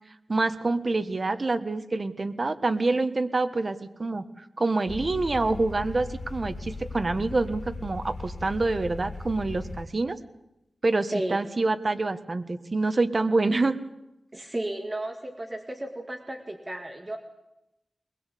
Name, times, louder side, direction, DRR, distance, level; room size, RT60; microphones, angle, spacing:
voice 1, 0.3-10.2 10.8-13.8, right 3 dB, 40° right, 9 dB, 1.4 m, -26 dB
sound 1, 4.9-9.9, left 3 dB, 85° left, 2.9 m, -38 dB
voice 2, 14.3-17.2, right 1 dB, 20° right, 4 dB, 2.1 m, -33 dB
22.0 x 21.0 x 8.5 m, 0.90 s
wide cardioid pair, 125°, 0 cm